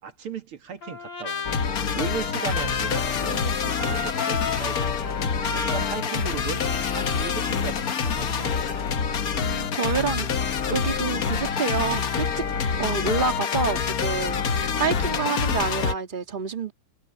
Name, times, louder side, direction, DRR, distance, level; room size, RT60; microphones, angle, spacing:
voice 1, 0.0-1.5 1.9-5.2 5.5-6.6 6.9-8.7, right 6 dB, 80° right, 2.7 m, -36 dB
Trumpet, 0.8-7.5, left 4 dB, 85° left, 4.7 m, -34 dB
sound 1, 1.4-15.9, left 6 dB, 50° left, 1.4 m, -26 dB
voice 2, 9.4-12.4 12.8-14.4 14.8-16.7, right 5 dB, 25° right, 2.0 m, -28 dB
omnidirectional pair, 2.3 m